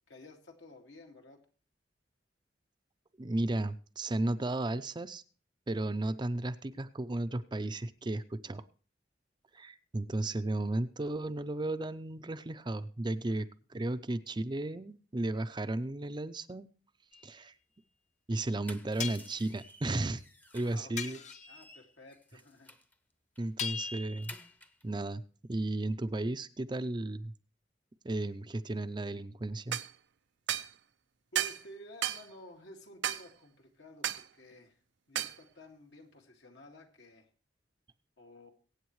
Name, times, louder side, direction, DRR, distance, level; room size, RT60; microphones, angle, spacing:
voice 1, 0.0-1.5 13.3-13.4 20.6-22.8 31.3-34.8 35.1-37.3 38.2-38.5, left 1 dB, 75° left, 2 dB, 2.3 m, -53 dB
voice 2, 3.2-5.2 5.7-8.6 9.5-16.7 17.2-17.5 18.3-20.2 20.5-21.2 23.4-24.3 24.8-25.2 25.5-27.3 28.0-29.8, right 2 dB, 25° right, 11 dB, 0.5 m, -34 dB
sound 1, 17.1-17.3 19.0-19.4 21.0-21.6 23.6-24.5, left 6 dB, 40° left, 0.9 m, -39 dB
sound 2, 18.4-20.9 21.2-22.9 23.3-23.5 23.8-24.8, left 1 dB, 10° left, 0.8 m, -53 dB
sound 3, 29.7-29.9 30.5-30.7 31.3-31.6 32.0-32.2 33.0-33.2 34.0-34.2 35.1-35.4, right 11 dB, 70° right, 0.5 m, -32 dB
23.0 x 8.7 x 3.1 m, 0.39 s
head